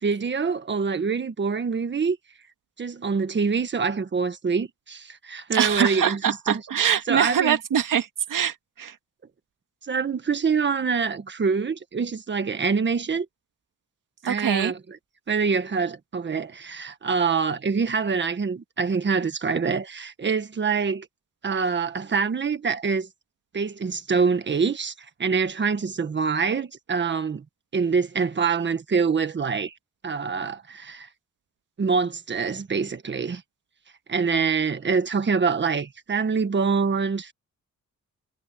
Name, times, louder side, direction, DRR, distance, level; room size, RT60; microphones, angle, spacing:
voice 1, 0.0-2.2 2.8-6.6 7.1-7.6 9.9-13.2 14.2-14.8 15.3-21.1 21.4-23.1 23.5-24.9 25.2-27.4 27.7-29.7 30.0-31.1 31.8-33.4 34.1-37.3, right 5 dB, 35° right, 1.5 m, -25 dB
voice 2, 5.5-9.0 14.3-14.7, right 8 dB, 90° right, 2.2 m, -24 dB
wide cardioid pair, 170°, 31 cm